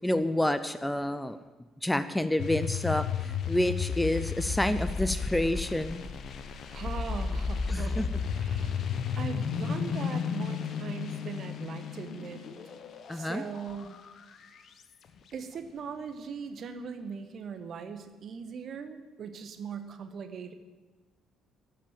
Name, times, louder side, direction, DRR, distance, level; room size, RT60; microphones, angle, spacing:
voice 1, 0.0-1.4 1.8-6.0 7.7-8.0 13.1-13.4, left 1 dB, 5° left, 12 dB, 0.6 m, -28 dB
sound 1, 2.4-14.8, left 6 dB, 50° left, 0.9 m, -33 dB
voice 2, 6.7-8.1 8.3-8.9 9.1-12.4 13.1-14.0 15.3-20.5, right 6 dB, 45° right, 8 dB, 1.2 m, -40 dB
12.5 x 7.5 x 9.2 m, 1.2 s
figure-of-eight pair, 45°, 0 cm